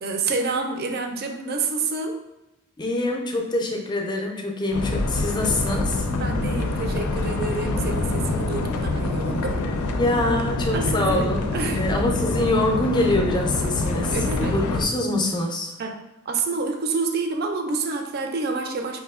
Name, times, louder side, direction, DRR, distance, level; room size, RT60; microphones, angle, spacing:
voice 1, 0.0-2.2 6.1-9.9 10.7-12.0 13.9-14.6 15.8-16.0 16.3-19.0, right 4 dB, 45° right, 4 dB, 0.4 m, -28 dB
voice 2, 2.8-6.1 10.0-11.5 11.7-14.2 14.5-15.8, left 2 dB, 20° left, 1 dB, 0.4 m, -24 dB
sound 1, 4.7-14.8, left 2 dB, 90° left, 0.4 m, -26 dB
5.1 x 2.7 x 2.4 m, 0.97 s
head